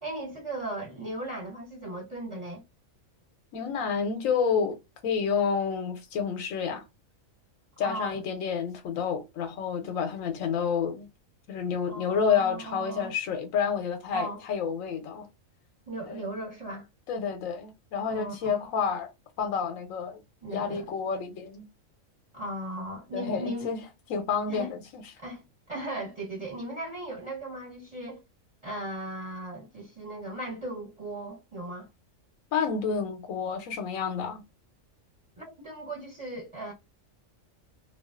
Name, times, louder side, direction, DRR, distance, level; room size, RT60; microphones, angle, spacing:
voice 1, 0.0-2.6 7.8-8.2 11.9-13.1 14.1-14.4 15.9-16.8 18.1-18.7 20.4-20.9 22.3-23.7 24.5-24.7 25.2-25.4 25.7-28.2 28.6-31.9 35.4-36.7, right 1 dB, 25° right, 0.9 m, -37 dB
voice 2, 3.5-4.8 5.0-6.8 7.8-11.1 11.5-15.3 16.0-16.2 17.1-19.1 19.4-20.2 20.5-21.7 23.1-23.8 24.1-25.0 32.5-34.4, left 6 dB, 85° left, 1.0 m, -29 dB
2.4 x 2.2 x 2.3 m
omnidirectional pair, 1.3 m